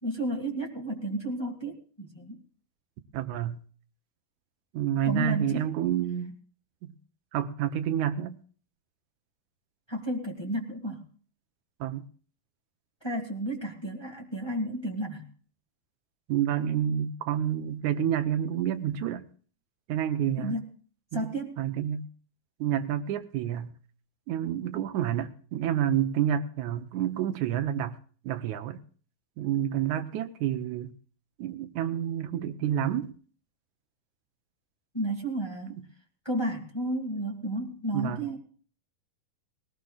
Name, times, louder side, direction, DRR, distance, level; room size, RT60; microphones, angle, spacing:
voice 1, 0.0-2.4 5.0-5.7 9.9-11.1 13.0-15.3 20.4-20.7 21.1-21.6 34.9-35.8 36.2-38.4, right 1 dB, 35° left, 0.4 m, -32 dB
voice 2, 3.1-3.6 4.7-6.4 6.8-6.9 7.3-8.4 11.8-12.1 16.3-19.3 19.9-20.5 21.1-21.3 21.6-22.1 22.6-23.7 24.3-28.0 28.2-28.8 29.4-30.9 31.4-33.1 35.7-35.9 37.9-38.2, right 10 dB, 80° right, 1.7 m, -29 dB
19.5 x 18.5 x 2.4 m
omnidirectional pair, 4.4 m